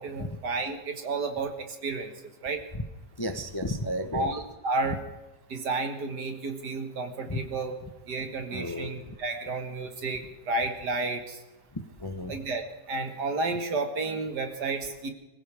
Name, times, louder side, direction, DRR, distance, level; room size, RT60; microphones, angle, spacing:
voice 1, 0.0-2.6 4.1-5.0 5.5-7.8 8.1-11.4 12.3-12.6 12.9-15.1, right 3 dB, 70° right, 5 dB, 2.4 m, -31 dB
voice 2, 3.2-4.3 7.3-7.4 8.5-8.9 11.7-12.3, left 1 dB, 20° left, 7 dB, 0.7 m, -32 dB
25.0 x 16.0 x 3.5 m, 1.0 s
omnidirectional pair, 1.9 m